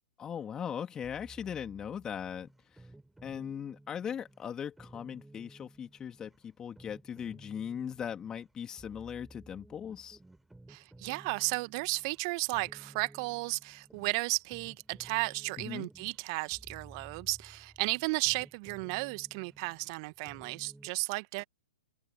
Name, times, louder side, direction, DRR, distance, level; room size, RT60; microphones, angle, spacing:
voice 1, 0.2-2.9 3.2-10.2 15.6-15.9, left 8 dB, 20° left, 3.1 m, -39 dB
sound 1, 1.0-20.9, right 2 dB, 5° right, 4.0 m, -56 dB
voice 2, 10.7-21.4, right 28 dB, 40° right, 1.4 m, -34 dB
figure-of-eight pair, 115°, 4 cm